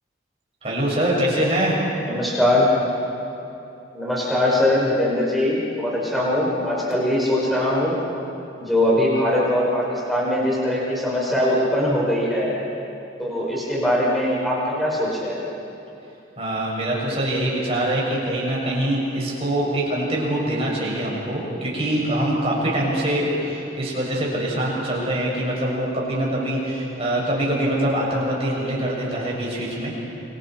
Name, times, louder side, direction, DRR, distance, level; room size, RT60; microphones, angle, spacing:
voice 1, 0.6-1.8 16.4-29.9, right 1 dB, 30° right, -4 dB, 6.3 m, -24 dB
voice 2, 2.0-2.7 3.9-7.9 8.7-12.5 13.2-15.4, left 1 dB, ahead, -6 dB, 5.6 m, -21 dB
28.5 x 25.5 x 4.6 m, 2.8 s
head